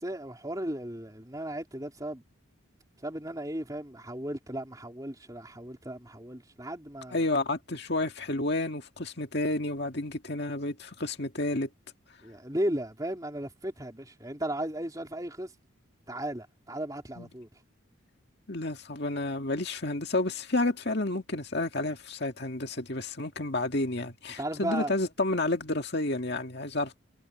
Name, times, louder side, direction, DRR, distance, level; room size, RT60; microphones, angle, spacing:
voice 1, 0.0-2.2 3.0-7.3 12.2-15.5 16.1-17.5 24.4-24.9, right 1 dB, 15° right, 3.8 m, -35 dB
voice 2, 7.1-11.7 17.2-17.3 18.5-27.0, left 2 dB, 50° left, 2.0 m, -30 dB
head